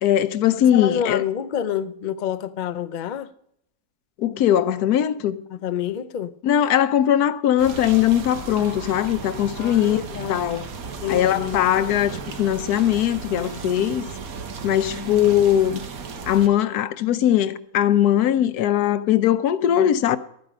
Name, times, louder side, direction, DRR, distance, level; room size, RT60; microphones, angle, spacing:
voice 1, 0.0-1.2 4.2-5.4 6.4-10.0 10.3-10.6 11.1-14.1 14.6-15.8 16.2-20.2, left 11 dB, 80° left, 1.2 m, -20 dB
voice 2, 0.6-3.3 5.5-6.4 9.6-10.4 11.0-11.6, left 9 dB, 60° left, 0.4 m, -28 dB
sound 1, 7.6-16.5, right 5 dB, 65° right, 1.5 m, -35 dB
12.5 x 9.6 x 5.1 m
omnidirectional pair, 1.6 m